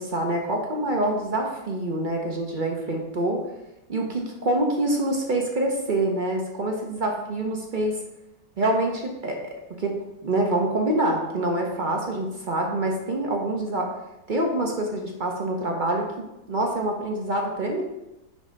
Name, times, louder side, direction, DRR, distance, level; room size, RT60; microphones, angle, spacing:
voice 1, 0.0-3.4 3.9-8.0 8.6-9.9 10.2-13.9 14.3-17.8, right 1 dB, 45° right, 1 dB, 0.7 m, -26 dB
6.4 x 3.2 x 5.1 m, 0.93 s
omnidirectional pair, 1.6 m